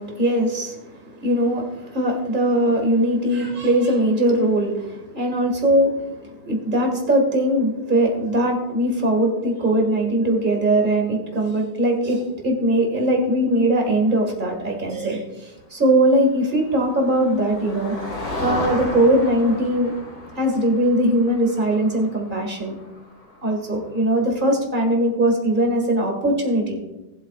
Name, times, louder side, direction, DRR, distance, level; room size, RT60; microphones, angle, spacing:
voice 1, 0.0-17.9 18.4-20.0 20.4-22.8 23.4-26.8, right 1 dB, 25° right, 1 dB, 2.0 m, -20 dB
Motor vehicle (road), 16.4-24.1, left 2 dB, 40° left, 3.3 m, -34 dB
19.0 x 8.1 x 2.5 m, 1.0 s
omnidirectional pair, 2.2 m